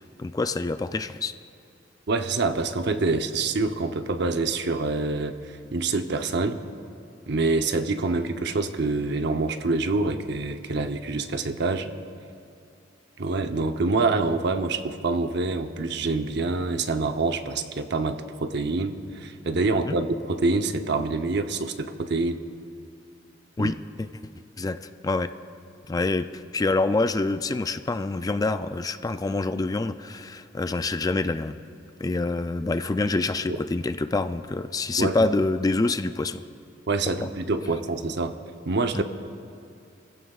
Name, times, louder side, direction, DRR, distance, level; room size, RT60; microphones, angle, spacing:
voice 1, 0.2-1.3 19.9-20.0 23.6-24.1 24.6-25.3 25.9-26.3 26.5-31.6 32.0-36.4 37.2-37.3 38.9-39.0, left 3 dB, 20° left, 10 dB, 0.3 m, -26 dB
voice 2, 2.1-6.6 7.3-11.9 13.2-22.4 23.6-23.7 35.0-35.2 36.9-38.3 38.7-39.0, right 3 dB, 65° right, 7 dB, 0.8 m, -26 dB
26.0 x 15.5 x 2.4 m, 2.4 s
head